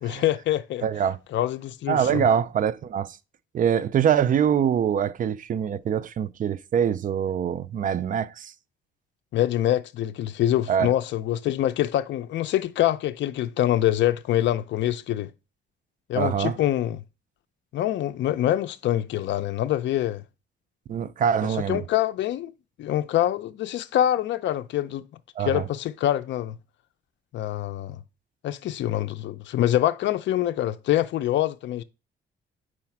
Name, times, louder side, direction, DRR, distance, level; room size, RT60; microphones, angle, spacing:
voice 1, 0.0-0.8 1.3-2.3 9.3-15.3 16.1-17.0 17.7-20.2 21.7-22.5 22.8-25.1 25.4-26.6 27.3-28.0 28.4-31.8, left 12 dB, 70° left, 0.5 m, -25 dB
voice 2, 0.8-1.2 1.9-3.2 3.5-8.5 10.7-10.9 16.1-16.6 20.9-21.8 25.4-25.7, right 8 dB, 45° right, 0.4 m, -24 dB
4.9 x 4.1 x 5.8 m
cardioid pair, 120°, 20 cm